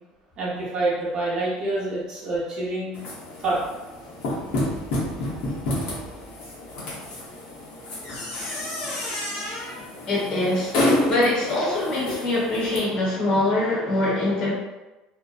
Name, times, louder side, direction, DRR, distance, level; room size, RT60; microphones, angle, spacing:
voice 1, 0.4-3.1 3.4-3.6, right 2 dB, 35° right, -7 dB, 0.9 m, -27 dB
sound 1, 2.9-12.8, left 1 dB, 65° left, 0.8 m, -29 dB
voice 2, 10.1-10.7 11.1-14.5, left 2 dB, 35° left, -6 dB, 0.8 m, -23 dB
2.8 x 2.0 x 2.4 m, 1.1 s
cardioid pair, 180°, 2 cm